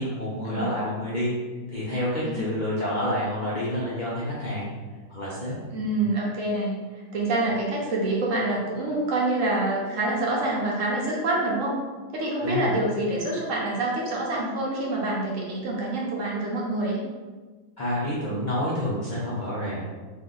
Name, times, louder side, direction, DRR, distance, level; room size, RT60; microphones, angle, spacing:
voice 1, 0.0-1.3 1.7-4.6 5.1-5.5 12.4-12.7 17.8-19.8, left 1 dB, 50° left, -8 dB, 0.5 m, -28 dB
voice 2, 5.7-6.7 7.1-11.8 12.1-17.0, right 2 dB, 65° right, -3 dB, 1.0 m, -26 dB
2.6 x 2.6 x 3.6 m, 1.4 s
omnidirectional pair, 1.6 m